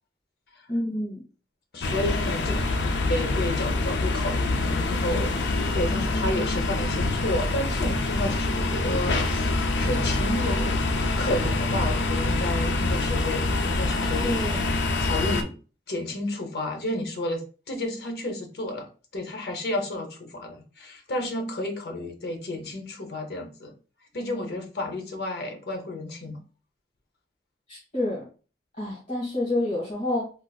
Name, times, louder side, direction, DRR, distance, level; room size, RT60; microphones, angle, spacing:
voice 1, 0.7-1.2 2.8-3.0 14.2-14.6 27.7-28.3 28.8-30.3, left 1 dB, 45° left, -8 dB, 1.6 m, -28 dB
voice 2, 1.7-2.5 3.1-10.9 11.2-14.5 15.0-15.6 15.9-18.9 19.1-23.7 24.1-26.4, left 1 dB, 60° left, 3 dB, 0.8 m, -31 dB
sound 1, 1.8-15.4, left 2 dB, 90° left, 0.5 m, -25 dB
3.9 x 2.4 x 2.3 m, 0.36 s
head